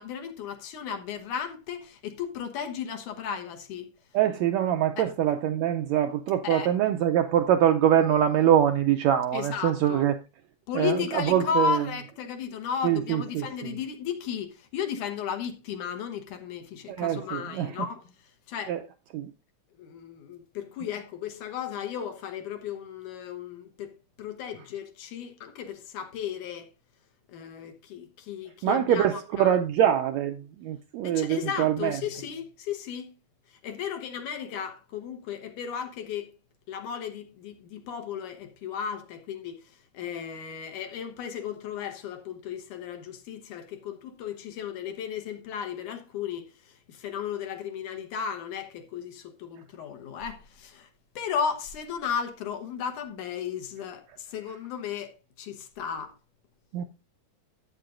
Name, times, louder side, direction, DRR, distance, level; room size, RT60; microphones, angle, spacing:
voice 1, 0.0-3.9 5.0-5.1 6.4-6.7 9.3-10.1 10.7-18.0 18.5-18.8 19.7-23.9 24.2-26.7 27.3-29.9 31.0-33.1 33.6-36.3 36.7-50.9 51.2-56.1, left 7 dB, 75° left, 2.5 m, -35 dB
voice 2, 4.1-10.1 10.7-11.8 12.8-13.7 16.9-17.7 18.7-18.8 19.1-19.3 28.6-30.4 30.6-32.0 56.7-56.8, right 10 dB, 80° right, 1.6 m, -24 dB
13.5 x 8.4 x 2.5 m
omnidirectional pair, 3.7 m